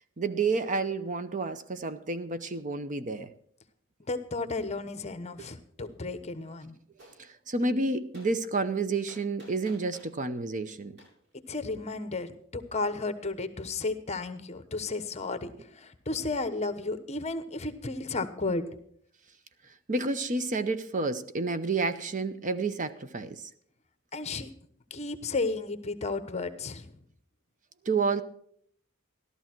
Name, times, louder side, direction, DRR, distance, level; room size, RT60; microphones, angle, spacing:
voice 1, 0.2-3.3 5.4-5.5 7.2-11.0 19.9-23.5 27.8-28.2, right 3 dB, 40° right, 0.7 m, -30 dB
voice 2, 4.1-6.7 11.5-18.7 24.1-24.5 24.9-26.8, left 3 dB, 30° left, 1.1 m, -33 dB
Gunshot gunfire, 7.0-7.2 8.1-8.3 9.1-10.2 11.0-11.1, right 1 dB, 55° right, 7.6 m, -52 dB
14.5 x 12.5 x 4.5 m
head